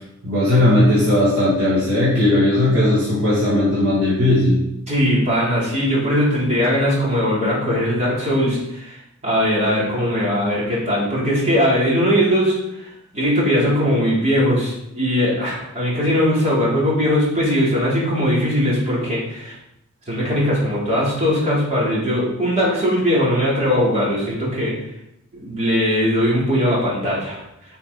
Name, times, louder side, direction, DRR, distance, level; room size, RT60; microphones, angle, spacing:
voice 1, 0.2-4.6, left 1 dB, 70° right, -8 dB, 2.8 m, -17 dB
voice 2, 4.9-8.9 9.2-12.6 13.1-19.5 20.1-24.7 25.3-27.4, equal, 30° right, -6 dB, 3.6 m, -19 dB
10.0 x 5.8 x 4.2 m, 0.82 s
head